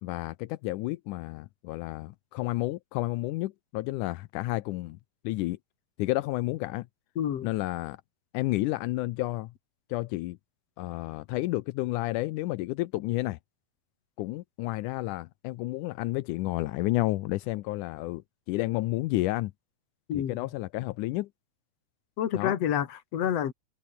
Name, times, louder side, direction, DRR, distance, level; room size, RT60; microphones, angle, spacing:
voice 1, 0.0-5.0 5.2-5.6 6.0-6.9 7.4-8.0 8.3-9.5 9.9-10.4 10.8-13.4 14.2-19.5 20.1-21.3 22.3-22.5, left 18 dB, 80° left, 1.9 m, -31 dB
voice 2, 7.2-7.5 20.1-20.4 22.2-23.5, left 9 dB, 50° left, 2.5 m, -28 dB
omnidirectional pair, 4.2 m